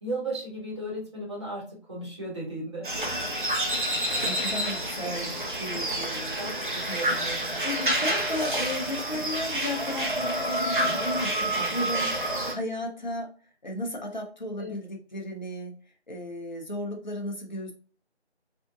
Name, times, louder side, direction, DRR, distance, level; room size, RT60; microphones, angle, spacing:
voice 1, 0.0-2.9 5.0-5.3 5.9-6.0 6.3-7.5 11.5-11.8 14.6-14.8, right 1 dB, 25° right, -5 dB, 1.3 m, -36 dB
sound 1, 2.8-12.5, right 1 dB, 45° right, 0.7 m, -28 dB
voice 2, 3.8-6.6 6.9-7.1 7.6-13.3 13.6-15.8 16.1-17.7, left 1 dB, 40° left, 1 dB, 0.9 m, -35 dB
4.3 x 2.7 x 2.5 m, 0.38 s
figure-of-eight pair, 165°, 35 cm